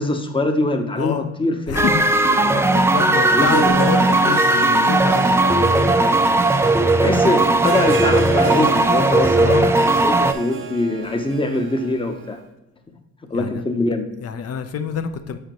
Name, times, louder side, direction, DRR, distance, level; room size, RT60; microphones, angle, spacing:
voice 1, 0.0-1.9 2.4-2.6 3.3-3.7 7.0-12.4 13.3-14.0, left 2 dB, 15° left, 6 dB, 0.8 m, -23 dB
voice 2, 1.0-1.3 1.7-2.1 2.5-5.9 9.4-9.7 13.3-13.6 14.2-15.4, left 7 dB, 55° left, 9 dB, 0.6 m, -27 dB
sound 1, 1.8-10.3, right 2 dB, 10° right, 0.3 m, -17 dB
Harp, 3.4-12.4, right 5 dB, 40° right, 0.7 m, -32 dB
6.7 x 4.9 x 3.0 m, 1.0 s
cardioid pair, 90°, 30 cm